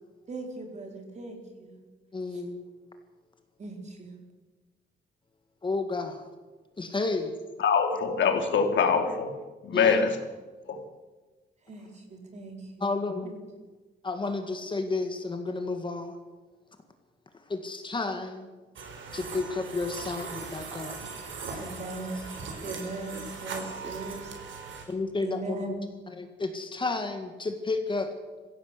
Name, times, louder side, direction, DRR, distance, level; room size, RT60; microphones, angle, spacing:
voice 1, 0.3-1.8 3.6-4.2 11.7-12.9 13.2-13.4 21.6-22.2 22.6-24.3 25.2-25.8, right 2 dB, 40° right, 4.2 m, -39 dB
voice 2, 2.1-2.6 5.6-6.2 6.8-7.4 9.7-10.0 12.8-13.3 14.0-16.2 17.5-18.5 19.1-21.0 24.9-25.8 26.1-28.1, left 3 dB, 25° left, 1.9 m, -31 dB
voice 3, 7.6-9.3 9.6-10.2 10.7-10.8, left 6 dB, 80° left, 2.9 m, -24 dB
sound 1, 18.8-24.9, right 4 dB, 90° right, 4.4 m, -39 dB
23.5 x 15.5 x 8.3 m
wide cardioid pair, 165°, 19 cm